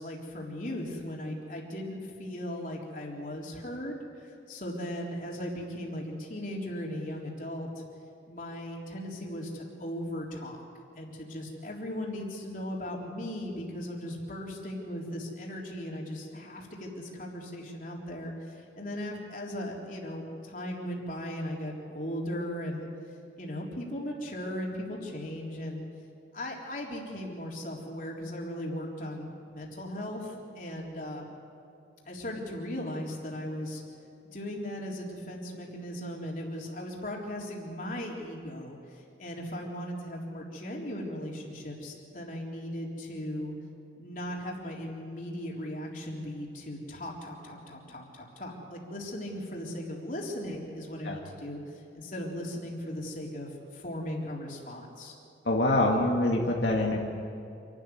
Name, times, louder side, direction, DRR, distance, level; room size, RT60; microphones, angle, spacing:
voice 1, 0.0-7.8 8.3-10.7 10.9-22.9 23.4-25.8 26.3-31.3 32.1-33.8 34.3-43.5 44.0-55.2, left 1 dB, 45° left, -2 dB, 3.8 m, -37 dB
voice 2, 55.4-57.0, left 1 dB, 80° left, -2 dB, 2.2 m, -25 dB
27.5 x 12.5 x 9.8 m, 2.6 s
head